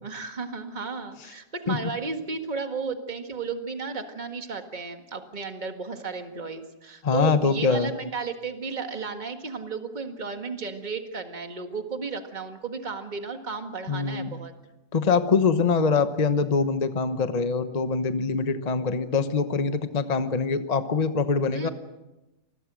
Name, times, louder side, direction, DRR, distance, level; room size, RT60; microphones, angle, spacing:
voice 1, 0.0-14.5 21.5-21.7, right 4 dB, 30° right, 6 dB, 1.9 m, -34 dB
voice 2, 7.0-7.9 13.9-14.3 14.9-21.7, left 4 dB, 30° left, 9 dB, 1.0 m, -24 dB
27.5 x 21.0 x 6.3 m, 1.0 s
omnidirectional pair, 1.7 m